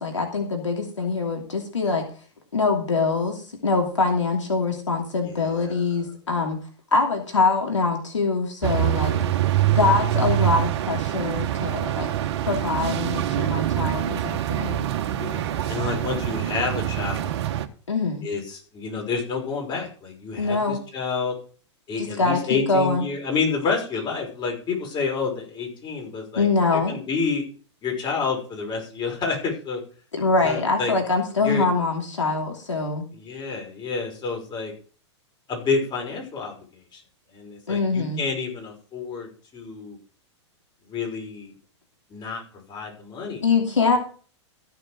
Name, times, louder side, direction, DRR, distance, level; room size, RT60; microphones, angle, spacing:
voice 1, 0.0-2.0 2.5-6.6 6.9-9.1 9.7-12.1 12.5-14.8 17.9-18.3 20.4-20.8 22.0-23.1 26.4-26.9 30.1-33.0 37.7-38.2 43.4-44.0, left 4 dB, 90° left, 2 dB, 2.8 m, -24 dB
voice 2, 5.2-5.8 9.1-9.8 12.4-12.5 15.2-17.4 18.2-21.3 21.9-26.5 26.7-27.4 27.8-29.8 30.4-30.9 31.4-31.6 33.1-34.7 35.5-36.6 36.9-37.0 37.3-40.0 40.9-41.5 42.1-43.4, left 4 dB, 30° left, 1 dB, 5.7 m, -29 dB
sound 1, 8.6-17.7, right 12 dB, 60° right, 1.3 m, -25 dB
15.0 x 7.0 x 5.1 m, 0.41 s
hypercardioid pair, 105°, 15 cm